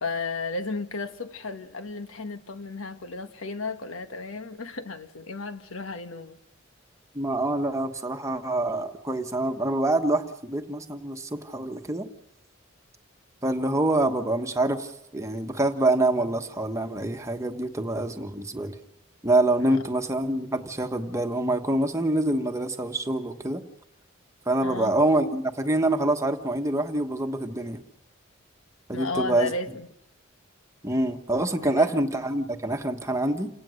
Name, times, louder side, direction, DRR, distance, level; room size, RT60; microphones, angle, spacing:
voice 1, 0.0-6.4 19.6-19.8 24.6-24.9 28.9-29.9 31.6-32.0, left 3 dB, 85° left, 1.3 m, -34 dB
voice 2, 7.1-12.1 13.4-18.8 19.2-23.6 24.5-27.8 28.9-29.5 30.8-33.5, right 2 dB, 15° right, 1.2 m, -26 dB
29.0 x 17.5 x 6.4 m
head